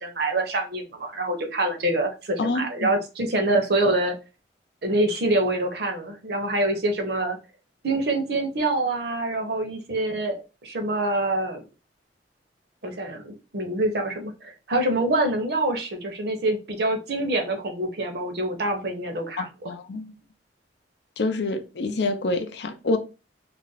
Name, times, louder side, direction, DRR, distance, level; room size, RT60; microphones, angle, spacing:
voice 1, 0.0-4.1 4.8-7.4 7.8-11.6 12.8-19.5, right 2 dB, 60° right, 0.7 m, -25 dB
voice 2, 2.4-2.9 19.4-20.1 21.2-23.0, left 2 dB, 65° left, 0.5 m, -27 dB
2.4 x 2.1 x 3.9 m
head